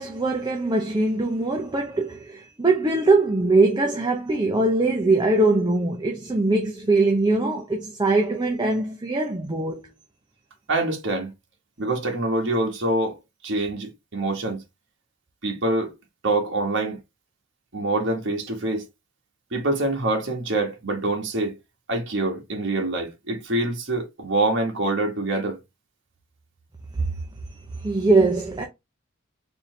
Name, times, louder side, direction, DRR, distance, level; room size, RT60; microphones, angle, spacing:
voice 1, 0.0-9.9 27.0-27.1 27.8-28.7, right 2 dB, 20° right, 0.6 m, -22 dB
voice 2, 10.7-11.3 11.8-13.2 13.4-14.6 15.4-15.9 16.2-17.0 17.7-18.8 19.5-21.5 21.9-25.6, right 2 dB, 60° right, 1.3 m, -25 dB
4.3 x 2.7 x 3.2 m
head